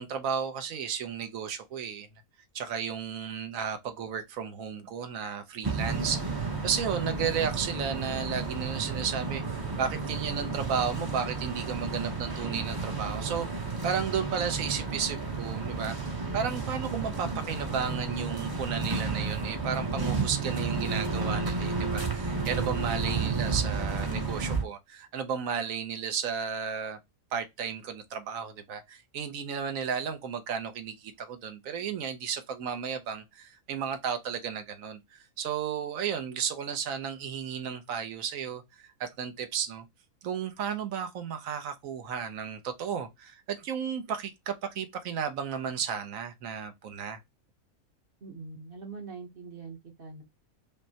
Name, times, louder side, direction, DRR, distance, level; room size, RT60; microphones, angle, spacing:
voice 1, 0.0-2.1 2.5-16.0 16.3-27.0 27.3-39.9 40.2-47.2, right 7 dB, 70° right, 1.1 m, -33 dB
sound 1, 5.6-24.6, right 4 dB, 25° right, 0.5 m, -32 dB
voice 2, 48.2-50.2, right 4 dB, 45° right, 0.9 m, -43 dB
5.3 x 2.1 x 2.7 m
omnidirectional pair, 1.5 m